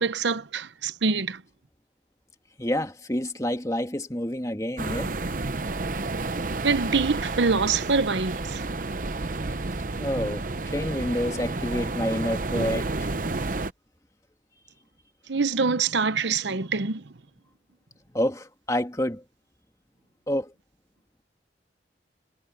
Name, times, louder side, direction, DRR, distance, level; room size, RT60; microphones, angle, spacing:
voice 1, 0.0-1.4 6.6-8.6 15.3-17.0, right 4 dB, 75° right, 0.9 m, -25 dB
voice 2, 2.6-5.1 9.9-13.1 18.1-19.2 20.3-20.5, equal, 20° left, 1.9 m, -28 dB
sound 1, 4.8-13.7, right 3 dB, 45° right, 0.8 m, -30 dB
head